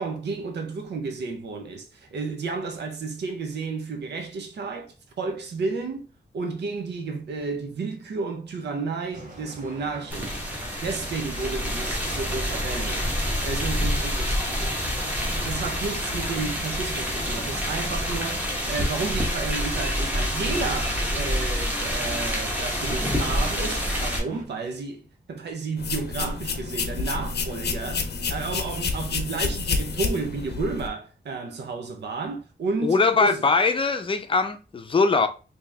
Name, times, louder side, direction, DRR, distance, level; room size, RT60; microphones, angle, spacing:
voice 1, 0.0-6.1 6.3-33.4, right 4 dB, 90° right, 0.6 m, -32 dB
sound 1, 9.1-24.4, right 1 dB, 50° right, 1.3 m, -43 dB
sound 2, 10.1-24.2, equal, 10° right, 0.9 m, -27 dB
sound 3, 25.8-30.9, left 4 dB, 75° left, 0.6 m, -29 dB
voice 2, 32.8-35.3, left 4 dB, 30° left, 0.5 m, -21 dB
3.3 x 2.8 x 3.3 m
wide cardioid pair, 155°, 17 cm